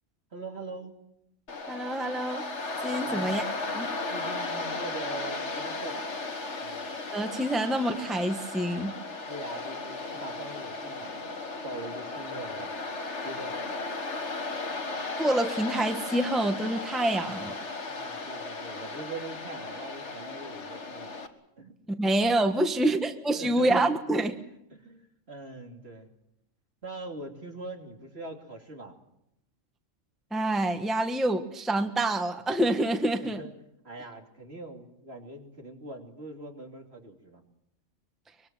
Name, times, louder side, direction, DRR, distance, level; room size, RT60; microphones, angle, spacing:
voice 1, 0.3-0.9 3.0-3.4 4.1-6.1 6.6-6.9 9.3-11.4 11.6-12.7 13.2-13.6 17.9-21.2 21.6-21.7 22.8-23.9 24.7-26.1 26.8-29.0 33.2-33.5 33.8-37.4, right 2 dB, 55° right, 2 dB, 3.3 m, -42 dB
Waves surf, 1.5-21.3, left 3 dB, 65° left, 2.2 m, -35 dB
voice 2, 1.7-2.4 2.8-3.5 3.7-3.9 7.1-8.9 15.2-17.5 21.9-24.3 30.3-33.4, right 1 dB, ahead, 6 dB, 1.2 m, -27 dB
24.5 x 23.5 x 7.5 m, 0.81 s
omnidirectional pair, 1.3 m